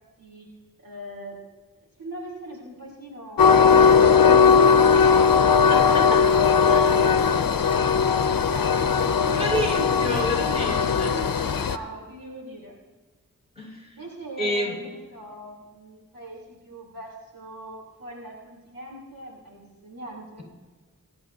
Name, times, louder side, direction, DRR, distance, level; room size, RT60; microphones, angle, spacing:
voice 1, 0.2-0.5 0.8-1.4 2.0-5.5 6.4-7.6 8.0-9.7 11.0-12.7 14.0-20.4, right 1 dB, 85° right, -4 dB, 3.4 m, -41 dB
Train, 3.4-11.8, left 6 dB, 85° left, 0.6 m, -18 dB
voice 2, 5.7-6.2 6.7-6.9 9.4-11.1 13.5-13.9 14.4-14.8, equal, 20° right, -4 dB, 5.2 m, -29 dB
23.5 x 12.0 x 2.7 m, 1.4 s
wide cardioid pair, 50°, 34 cm